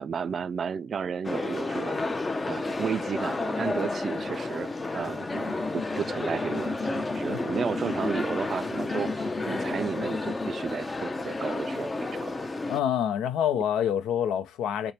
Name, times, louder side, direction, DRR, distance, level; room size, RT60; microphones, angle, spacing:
voice 1, 0.0-2.0 2.5-12.3, right 6 dB, 50° right, 0.3 m, -33 dB
sound 1, 1.2-12.8, left 2 dB, 25° left, 0.5 m, -31 dB
sound 2, 5.0-10.5, left 4 dB, 40° left, 1.0 m, -35 dB
voice 2, 12.7-14.9, left 9 dB, 80° left, 0.5 m, -27 dB
3.2 x 2.1 x 4.2 m
cardioid pair, 80°, 0 cm